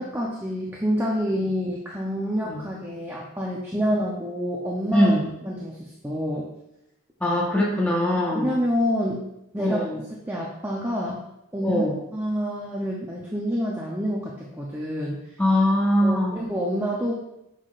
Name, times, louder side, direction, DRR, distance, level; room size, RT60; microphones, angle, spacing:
voice 1, 0.0-5.1 5.4-6.5 8.4-9.2 9.5-9.8 10.3-11.2 11.5-15.2 16.0-17.1, equal, 10° right, -3 dB, 0.6 m, -27 dB
voice 2, 4.9-5.3 7.2-8.5 9.6-10.0 11.6-11.9 15.4-16.4, left 1 dB, 5° left, -4 dB, 1.0 m, -22 dB
6.9 x 5.7 x 2.5 m, 0.85 s
head